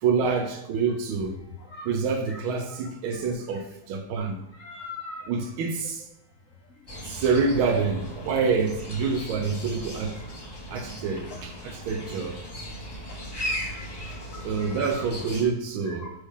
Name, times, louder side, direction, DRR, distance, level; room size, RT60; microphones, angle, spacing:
voice 1, 0.0-1.4 1.8-4.4 5.3-6.0 7.0-10.2 10.7-12.4 14.4-16.1, right 5 dB, 80° right, 5 dB, 1.7 m, -27 dB
voice 2, 4.6-5.3 13.4-13.9 14.6-15.0 15.9-16.1, left 3 dB, 85° left, 2 dB, 0.7 m, -40 dB
sound 1, 6.9-15.4, equal, 20° left, 0.6 m, -37 dB
8.3 x 3.4 x 3.7 m, 0.85 s
omnidirectional pair, 2.2 m